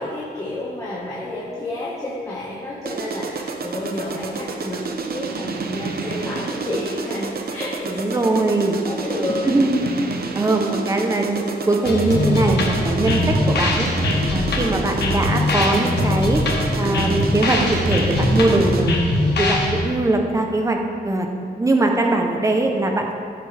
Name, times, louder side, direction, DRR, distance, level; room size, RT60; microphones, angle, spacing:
voice 1, 0.0-8.4 8.8-9.5, left 2 dB, 20° left, -7 dB, 1.6 m, -30 dB
sound 1, 2.9-19.0, right 4 dB, 65° right, 0.8 m, -29 dB
voice 2, 7.8-8.8 9.4-9.9 10.3-13.9 14.3-16.4 16.8-19.0 19.4-23.1, right 2 dB, 20° right, 3 dB, 0.9 m, -21 dB
sound 2, 11.8-19.9, left 1 dB, 80° left, 1.5 m, -21 dB
15.0 x 7.6 x 3.5 m, 2.3 s
wide cardioid pair, 145°, 17 cm